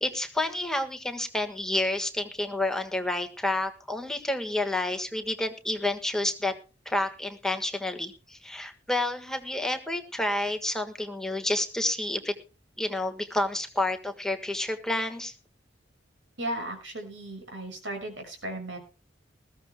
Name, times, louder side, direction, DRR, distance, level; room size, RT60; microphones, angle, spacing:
voice 1, 0.0-6.5 6.8-12.3 12.8-15.3, left 1 dB, 5° left, 5 dB, 1.5 m, -29 dB
voice 2, 16.4-18.8, right 1 dB, 80° right, 4 dB, 6.4 m, -36 dB
20.5 x 15.0 x 2.2 m, 0.32 s
head